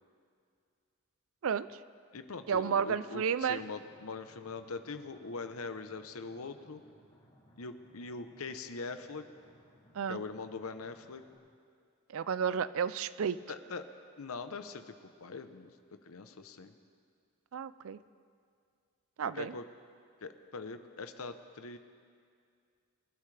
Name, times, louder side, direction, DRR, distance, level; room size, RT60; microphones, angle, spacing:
voice 1, 1.4-1.8 2.5-3.7 9.9-10.2 12.1-13.4 17.5-18.0 19.2-19.5, right 7 dB, 70° right, 15 dB, 0.4 m, -32 dB
voice 2, 2.1-6.8 7.6-9.3 10.1-11.2 13.5-13.9 14.2-15.7 16.0-16.7 19.3-19.7 20.2-21.8, left 4 dB, 80° left, 9 dB, 0.8 m, -42 dB
sound 1, 3.4-11.4, equal, 25° left, 4.4 m, -64 dB
24.5 x 12.0 x 3.3 m, 2.3 s
head